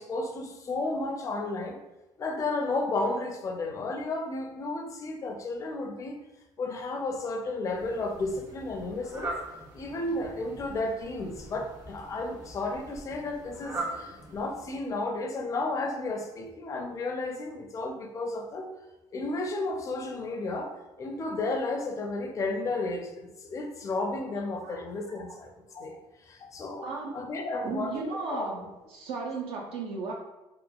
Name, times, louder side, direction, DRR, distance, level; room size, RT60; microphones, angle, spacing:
voice 1, 0.0-1.8 2.2-6.2 6.6-9.3 9.7-18.7 19.1-26.0 26.3-26.9 27.1-28.0 28.3-28.7, left 2 dB, 35° left, 4 dB, 0.4 m, -33 dB
Fowl, 7.6-15.0, right 2 dB, 40° right, 0.8 m, -41 dB
voice 2, 26.8-27.2 27.6-28.6 28.9-30.1, right 4 dB, 70° right, -1 dB, 0.4 m, -35 dB
2.9 x 2.2 x 2.2 m, 1.0 s
cardioid pair, 105°, 10 cm